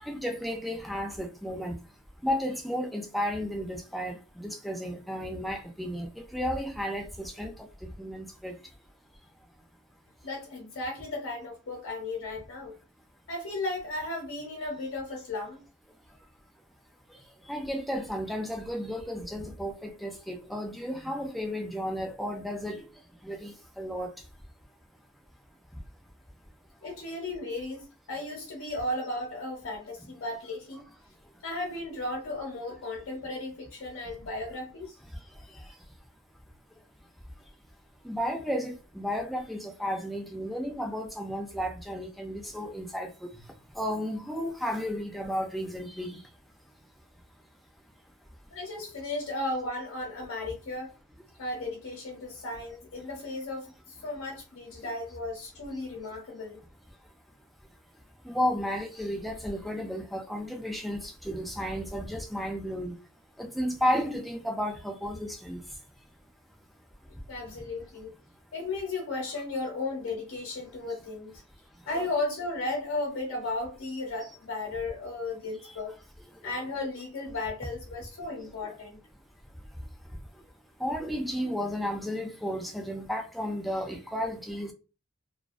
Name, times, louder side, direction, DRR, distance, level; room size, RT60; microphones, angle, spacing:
voice 1, 0.0-1.8 2.2-7.5 7.8-8.5 17.5-22.8 23.2-24.1 38.0-43.3 43.8-46.2 54.8-54.9 58.3-63.0 63.4-65.6 71.9-72.1 80.8-84.7, equal, ahead, 0.3 m, -33 dB
voice 2, 10.2-12.7 13.3-15.6 26.8-30.8 31.4-34.9 48.5-50.9 51.4-53.7 54.0-56.6 67.3-68.1 68.5-71.4 71.9-75.9 76.4-79.0, left 2 dB, 75° left, 0.8 m, -35 dB
2.3 x 2.2 x 2.4 m
head